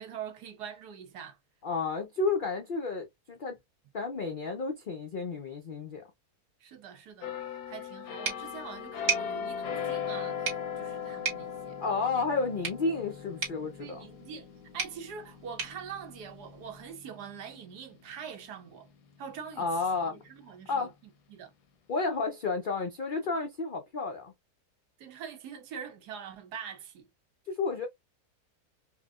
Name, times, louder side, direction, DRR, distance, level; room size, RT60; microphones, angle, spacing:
voice 1, 0.0-1.4 6.6-11.8 13.8-14.5 14.7-18.9 19.2-20.9 21.3-21.5 25.0-27.1, right 7 dB, 80° right, 1.4 m, -44 dB
voice 2, 1.6-3.6 3.9-6.0 11.8-14.1 19.6-20.2 20.7-20.9 21.9-24.3 27.5-27.9, left 4 dB, 65° left, 0.5 m, -31 dB
sound 1, 7.2-18.8 19.2-19.4, left 7 dB, 80° left, 1.3 m, -39 dB
sound 2, 8.2-16.9, right 5 dB, 60° right, 1.9 m, -39 dB
4.7 x 2.1 x 2.3 m
omnidirectional pair, 1.7 m